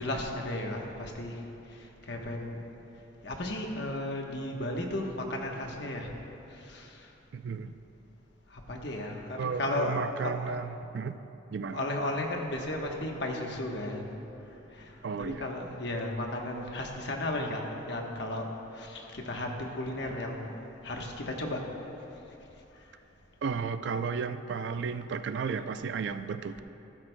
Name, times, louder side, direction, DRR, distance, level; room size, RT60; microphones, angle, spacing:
voice 1, 0.0-1.4 1.7-2.6 3.2-6.1 6.5-7.1 8.5-10.4 11.7-14.1 14.7-18.5 18.7-20.6 20.8-21.7, left 1 dB, 60° left, 1 dB, 1.1 m, -34 dB
voice 2, 7.3-7.7 9.4-11.2 11.5-11.8 15.0-15.5 23.4-26.6, right 5 dB, 60° right, 11 dB, 0.3 m, -33 dB
14.5 x 12.5 x 2.2 m, 3.0 s
head